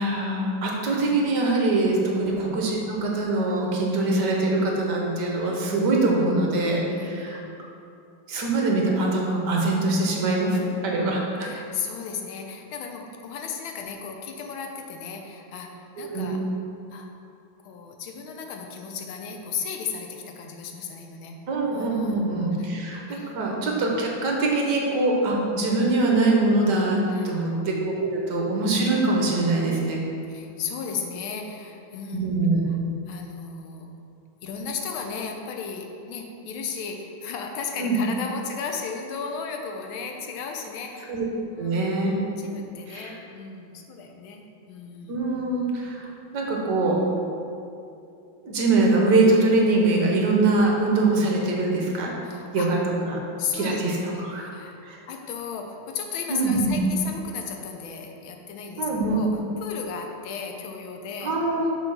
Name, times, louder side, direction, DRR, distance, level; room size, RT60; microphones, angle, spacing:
voice 1, 0.0-7.4 8.3-11.5 16.0-16.3 21.5-30.0 32.1-32.7 37.8-38.0 41.1-41.2 41.6-42.1 42.9-43.1 45.1-46.1 46.3-47.0 48.4-52.1 52.5-52.8 53.1-53.2 53.5-54.5 54.8-55.0 56.3-56.8 58.8-59.2 61.2-61.7, right 2 dB, 60° right, -1 dB, 1.5 m, -23 dB
voice 2, 6.8-7.5 11.4-16.4 16.9-17.1 17.6-21.4 21.7-22.2 22.6-22.7 23.0-23.4 27.0-27.5 30.3-32.3 32.7-32.8 33.1-33.9 34.4-41.1 41.5-41.9 42.4-45.2 52.2-52.7 53.4-53.8 54.1-54.8 55.1-61.4, left 6 dB, 80° left, 3 dB, 1.6 m, -35 dB
6.8 x 4.1 x 6.0 m, 2.6 s
omnidirectional pair, 2.2 m